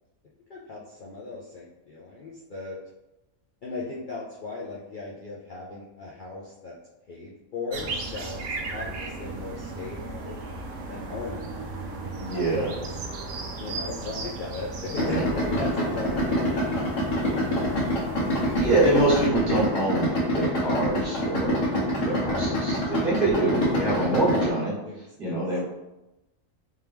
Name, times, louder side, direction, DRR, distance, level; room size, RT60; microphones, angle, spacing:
voice 1, 0.5-2.8 3.6-6.8 7.1-10.4 10.9-11.9 12.3-13.1 13.6-16.9 17.3-17.8 22.3-22.7 23.5-23.6 24.8-25.6, left 3 dB, 55° left, -5 dB, 0.6 m, -38 dB
sound 1, 7.7-19.3, right 3 dB, 70° right, 0.9 m, -36 dB
voice 2, 12.2-12.7 14.9-15.3 18.5-21.6 22.0-24.8 25.2-25.6, right 2 dB, 45° right, -7 dB, 1.5 m, -25 dB
Idling, 14.9-24.5, equal, 75° left, 1.3 m, -26 dB
3.5 x 3.0 x 3.4 m, 0.98 s
omnidirectional pair, 1.4 m